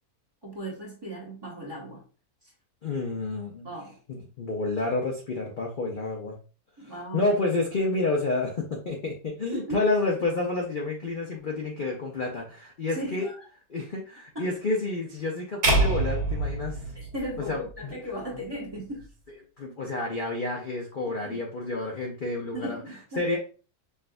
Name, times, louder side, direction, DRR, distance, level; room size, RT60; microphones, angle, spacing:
voice 1, 0.4-2.0 3.6-4.0 6.8-7.3 9.5-9.8 12.9-13.4 14.3-14.4 16.9-19.1 21.1-21.4 22.5-23.4, right 1 dB, 20° right, -2 dB, 1.2 m, -37 dB
voice 2, 2.8-3.7 4.1-6.4 6.8-13.3 13.7-16.8 17.4-18.0 18.3-18.4 19.6-22.8 23.2-23.4, left 2 dB, 45° left, -1 dB, 0.7 m, -29 dB
sound 1, 15.6-17.9, right 2 dB, 85° right, 1.7 m, -26 dB
5.7 x 2.7 x 2.2 m, 0.35 s
omnidirectional pair, 1.6 m